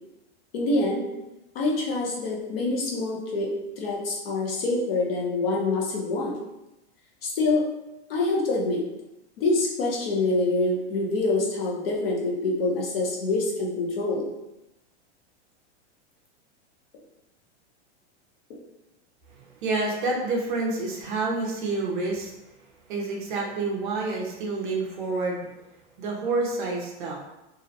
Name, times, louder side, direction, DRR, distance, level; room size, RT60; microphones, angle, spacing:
voice 1, 0.5-1.1 1.5-6.4 7.2-7.7 8.1-8.8 9.4-14.3, left 2 dB, 55° left, -2 dB, 0.7 m, -26 dB
voice 2, 19.6-22.3 22.9-25.4 26.0-27.2, right 3 dB, 45° right, -1 dB, 0.5 m, -28 dB
2.5 x 2.1 x 2.6 m, 0.94 s
supercardioid pair, 175°, 34 cm